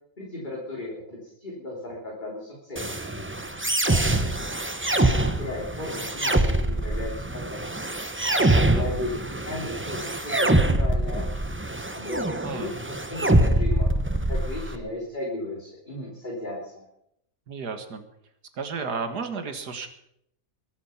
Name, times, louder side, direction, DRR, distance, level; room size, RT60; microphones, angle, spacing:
voice 1, 0.2-3.1 3.8-4.0 5.0-7.7 8.7-11.6 11.9-13.9 14.3-16.8, left 1 dB, 30° left, -4 dB, 3.6 m, -35 dB
sound 1, 2.8-14.8, right 1 dB, 10° right, 0.6 m, -24 dB
voice 2, 8.4-8.8 12.4-12.7 17.5-18.0 18.5-19.9, right 5 dB, 90° right, 8 dB, 2.3 m, -32 dB
22.5 x 10.0 x 5.8 m, 0.76 s
omnidirectional pair, 1.7 m